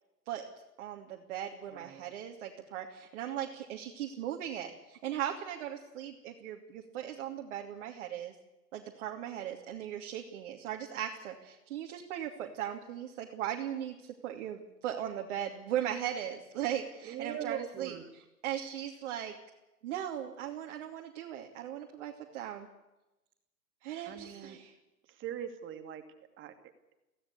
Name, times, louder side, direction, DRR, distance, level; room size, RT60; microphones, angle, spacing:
voice 1, 0.8-8.3 8.7-18.0 18.4-19.4 19.8-22.7 23.8-24.7, right 10 dB, 50° right, 1 dB, 2.9 m, -38 dB
voice 2, 1.7-2.0 17.0-18.1 24.0-24.6 25.1-26.0 26.4-26.7, right 9 dB, 25° right, 7 dB, 2.7 m, -41 dB
25.0 x 17.0 x 8.4 m, 0.98 s
figure-of-eight pair, 115°, 47 cm